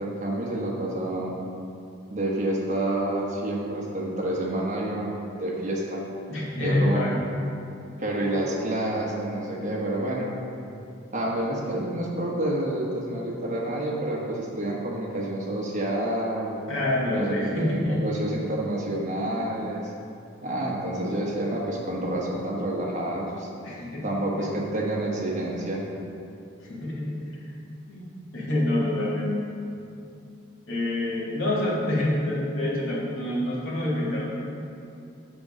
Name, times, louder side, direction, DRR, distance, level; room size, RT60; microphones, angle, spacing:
voice 1, 0.0-1.4 2.1-6.0 6.6-7.0 8.0-10.3 11.1-16.5 17.1-19.9 20.4-23.5 24.0-25.8, right 1 dB, 35° right, -3 dB, 1.2 m, -28 dB
voice 2, 6.3-7.1 16.7-18.0 23.6-24.1 26.6-27.2 27.9-28.1 28.3-29.4 30.7-34.3, left 1 dB, 65° left, -5 dB, 2.0 m, -26 dB
6.9 x 6.5 x 5.0 m, 2.6 s
head